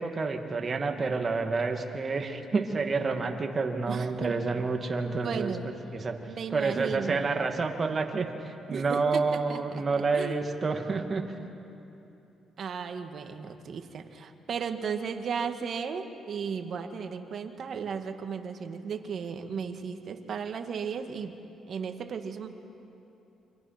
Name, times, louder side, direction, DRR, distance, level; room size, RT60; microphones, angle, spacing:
voice 1, 0.0-5.5 5.9-6.2 6.5-11.2, right 4 dB, 35° right, 3 dB, 2.4 m, -29 dB
voice 2, 3.9-4.3 5.2-5.6 6.3-7.3 8.7-10.4 12.6-21.3 21.7-22.5, right 6 dB, 55° right, 6 dB, 1.8 m, -35 dB
29.0 x 25.5 x 6.0 m, 2.9 s
cardioid pair, 90°, 0 cm